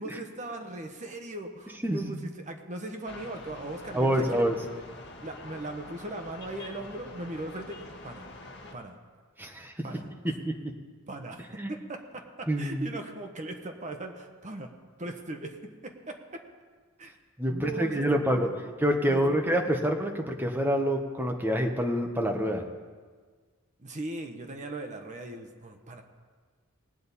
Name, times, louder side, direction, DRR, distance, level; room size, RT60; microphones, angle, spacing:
voice 1, 0.0-4.4 5.2-8.3 8.7-9.0 9.8-10.3 11.1-14.7 15.0-16.4 17.0-17.1 17.5-18.6 19.1-19.8 23.8-26.0, right 2 dB, 35° right, 4 dB, 0.9 m, -39 dB
voice 2, 1.8-2.1 3.9-4.5 9.4-9.7 10.4-10.6 11.6-11.7 12.5-12.8 17.4-18.5 18.8-22.7, equal, 10° right, 3 dB, 1.0 m, -26 dB
sound 1, 3.1-8.7, left 2 dB, 55° left, 1.3 m, -46 dB
19.0 x 8.6 x 4.1 m, 1.5 s
head